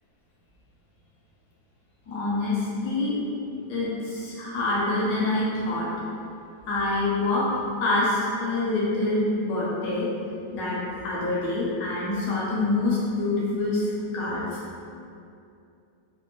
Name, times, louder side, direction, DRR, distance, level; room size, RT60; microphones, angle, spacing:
voice 1, 2.1-3.2 3.7-5.9 6.7-7.5 7.8-10.1 10.5-14.4, left 2 dB, 70° left, -7 dB, 0.9 m, -26 dB
2.9 x 2.0 x 2.3 m, 2.6 s
omnidirectional pair, 1.9 m